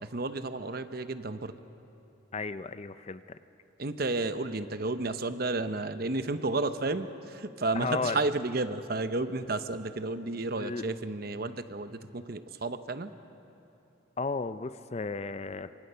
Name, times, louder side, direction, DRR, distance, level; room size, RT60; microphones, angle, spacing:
voice 1, 0.0-1.5 3.8-13.1, right 2 dB, 50° right, 10 dB, 0.9 m, -32 dB
voice 2, 2.3-3.4 7.7-8.2 10.6-10.8 14.2-15.7, left 4 dB, 30° left, 12 dB, 0.5 m, -34 dB
27.5 x 24.5 x 5.7 m, 2.9 s
head